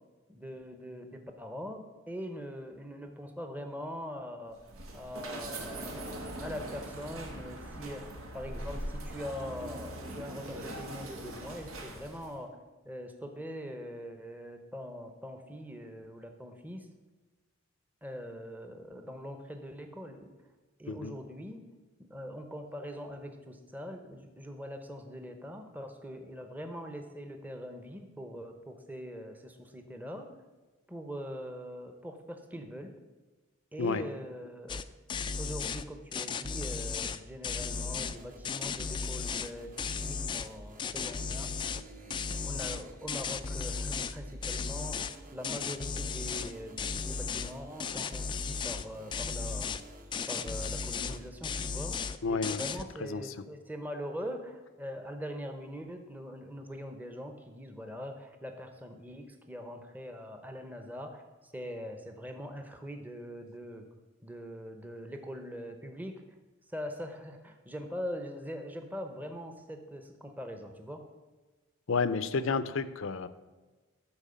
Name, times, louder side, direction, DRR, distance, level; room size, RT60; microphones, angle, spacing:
voice 1, 0.3-4.6 4.9-12.6 12.8-16.9 18.0-20.3 20.8-21.7 22.0-30.3 30.9-32.9 33.7-34.8 35.4-41.5 42.0-49.7 50.3-52.0 52.3-63.9 64.2-66.1 66.7-71.0, equal, 10° right, 5 dB, 0.8 m, -42 dB
sound 1, 4.5-12.4, right 1 dB, 85° right, 1.7 m, -41 dB
sound 2, 34.7-34.8 35.1-35.8 36.1-38.2 38.5-39.5 39.8-40.5 40.8-41.8 42.1-44.2 44.4-45.2 45.4-46.5 46.8-47.5 47.8-48.9 49.1-49.8 50.1-51.2 51.4-52.2 52.4-52.8, left 5 dB, 25° left, 0.3 m, -35 dB
sound 3, 37.7-51.3, right 1 dB, 40° right, 1.0 m, -51 dB
voice 2, 52.2-52.6 53.1-53.3 71.9-73.3, left 4 dB, 70° left, 13 dB, 0.6 m, -30 dB
13.0 x 4.5 x 6.8 m, 1.3 s
head